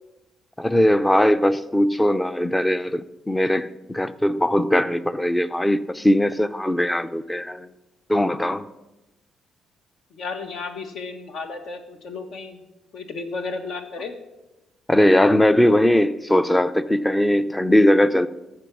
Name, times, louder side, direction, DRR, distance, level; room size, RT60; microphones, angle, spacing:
voice 1, 0.6-7.7 8.1-8.6 14.9-18.3, left 1 dB, 10° left, 0.5 m, -20 dB
voice 2, 10.1-12.6 12.9-14.1, left 4 dB, 65° left, 1.4 m, -33 dB
14.0 x 5.3 x 6.1 m
cardioid pair, 90°, 0 cm